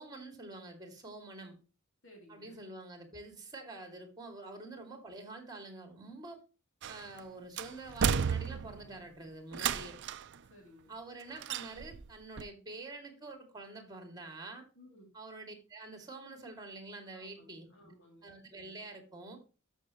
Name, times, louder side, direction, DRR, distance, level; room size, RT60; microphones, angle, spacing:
voice 1, 0.0-1.6 2.3-6.4 6.9-10.0 10.9-14.6 15.1-17.9 18.2-19.4, right 2 dB, 20° right, 5 dB, 2.3 m, -47 dB
voice 2, 2.0-2.6 9.5-10.2 10.5-11.0 14.8-15.1 17.1-18.3, left 1 dB, 55° left, 0 dB, 2.8 m, -58 dB
sound 1, 6.8-7.2 7.6-8.9 9.5-10.3 11.4-12.1 12.4-12.5, right 7 dB, 55° right, 0.5 m, -33 dB
12.5 x 6.3 x 3.0 m, 0.33 s
head